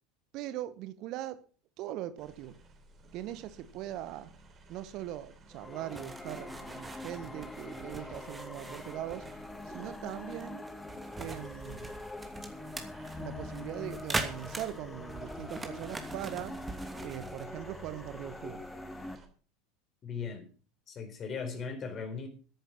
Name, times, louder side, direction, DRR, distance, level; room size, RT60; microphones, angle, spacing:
voice 1, 0.3-1.4 1.8-2.6 3.1-4.3 4.7-9.3 9.6-10.7 11.2-11.9 13.2-16.6 17.0-18.6, right 13 dB, 50° right, 1.0 m, -41 dB
sound 1, 2.2-19.3, right 2 dB, 30° right, 3.3 m, -55 dB
sound 2, 5.5-19.2, left 2 dB, 10° left, 1.4 m, -44 dB
sound 3, 5.9-17.4, right 3 dB, 15° right, 2.7 m, -42 dB
voice 2, 20.0-20.5 20.9-22.3, left 5 dB, 35° left, 4.1 m, -38 dB
13.5 x 10.5 x 5.9 m
figure-of-eight pair, 75°, 0 cm